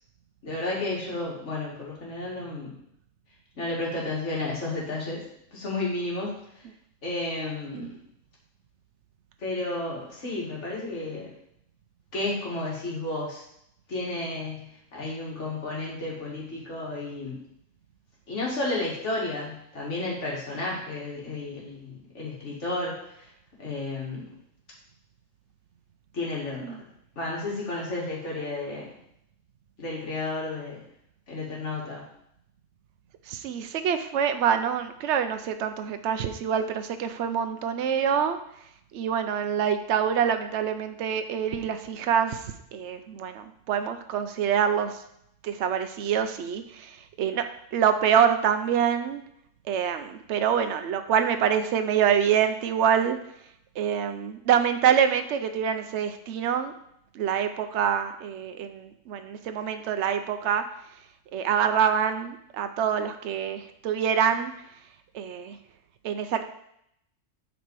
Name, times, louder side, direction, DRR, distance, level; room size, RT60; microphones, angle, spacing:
voice 1, 0.4-2.8 3.6-5.2 5.5-6.4 7.0-7.9 9.4-11.3 12.1-13.4 13.9-17.4 18.3-23.3 23.6-24.3 26.1-26.7 27.2-28.9 29.8-30.8 31.3-32.0, left 2 dB, 65° left, -4 dB, 2.3 m, -32 dB
voice 2, 33.3-38.4 38.9-45.0 45.4-47.4 47.7-49.2 49.7-53.2 53.8-56.7 57.1-60.6 61.3-64.5 65.1-65.6 66.0-66.4, right 8 dB, 65° right, 8 dB, 0.9 m, -26 dB
8.2 x 4.2 x 4.7 m, 0.74 s
omnidirectional pair, 1.3 m